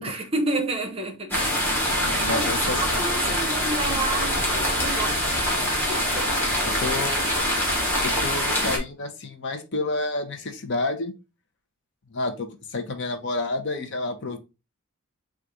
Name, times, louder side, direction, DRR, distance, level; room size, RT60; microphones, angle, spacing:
voice 1, 0.0-1.4 2.0-5.5 5.9-6.3 6.6-6.7, right 2 dB, 25° right, 0.7 m, -30 dB
sound 1, 1.3-8.8, equal, 10° left, 1.2 m, -24 dB
voice 2, 2.1-3.0 6.6-7.3 8.0-11.1 12.1-14.4, left 2 dB, 50° left, 0.7 m, -29 dB
4.0 x 2.4 x 4.7 m
head